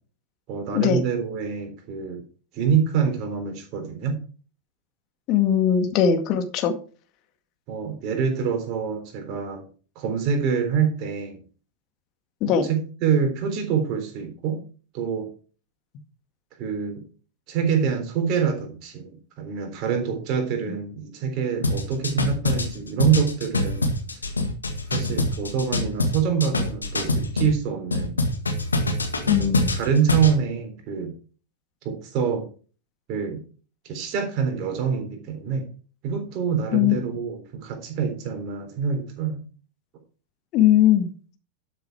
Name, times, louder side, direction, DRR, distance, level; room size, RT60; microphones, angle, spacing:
voice 1, 0.5-2.2 2.5-4.2 7.7-9.7 10.0-11.4 12.4-14.6 14.9-15.3 16.6-17.0 17.5-24.2 24.9-28.1 29.2-31.1 31.8-32.5 33.1-33.4 33.8-35.7 36.0-39.4, right 7 dB, 40° right, 5 dB, 3.7 m, -26 dB
voice 2, 5.3-6.7 12.4-12.7 29.3-29.7 36.7-37.0 40.5-41.1, left 9 dB, 40° left, 7 dB, 1.9 m, -20 dB
sound 1, 21.6-27.5 27.9-30.4, left 2 dB, 75° left, 1.9 m, -25 dB
12.0 x 7.0 x 4.8 m, 0.38 s
figure-of-eight pair, 90°, 0 cm